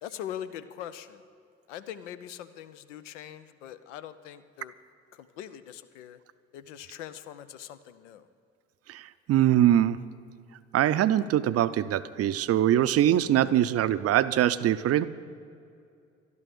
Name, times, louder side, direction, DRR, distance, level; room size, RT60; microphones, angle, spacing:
voice 1, 0.0-1.2 1.7-4.7 5.1-6.2 6.5-8.3, left 10 dB, 75° left, 12 dB, 0.7 m, -42 dB
voice 2, 9.3-10.0 10.7-15.1, right 12 dB, 40° right, 14 dB, 0.6 m, -23 dB
12.5 x 12.0 x 6.7 m, 2.4 s
figure-of-eight pair, 50°, 37 cm